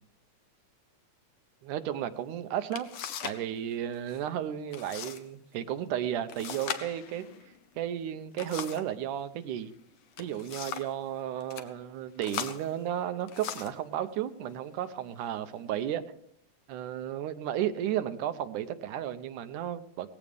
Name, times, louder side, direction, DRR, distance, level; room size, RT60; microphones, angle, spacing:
voice 1, 1.6-2.9 3.2-7.3 7.8-9.7 10.2-16.0 16.7-20.1, right 10 dB, 90° right, 12 dB, 2.4 m, -33 dB
sound 1, 2.2-2.3 2.7-3.5 3.7-4.2 4.7-5.2 5.5-5.6 6.3-9.0 9.9-11.0 11.4-11.7 12.2-13.8 14.6-14.8 15.3-15.8, left 8 dB, 60° left, 1.6 m, -40 dB
18.0 x 16.0 x 3.5 m, 0.68 s
omnidirectional pair, 3.5 m